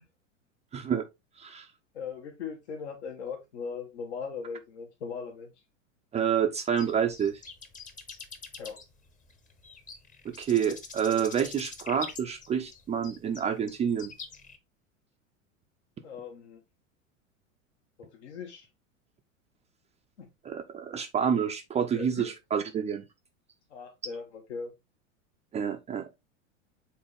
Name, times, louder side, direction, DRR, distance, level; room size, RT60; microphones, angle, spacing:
voice 1, 0.7-1.0 1.4-1.7 6.1-7.4 10.2-14.1 20.4-23.0 25.5-26.1, right 8 dB, 15° right, 0.6 m, -28 dB
voice 2, 1.9-5.5 8.6-8.8 16.0-16.6 18.0-18.7 20.2-20.3 21.9-22.3 23.7-24.7, left 5 dB, 60° left, 1.5 m, -39 dB
sound 1, 6.7-14.6, left 5 dB, 20° left, 1.1 m, -45 dB
7.3 x 4.3 x 3.5 m
figure-of-eight pair, 85°, 39 cm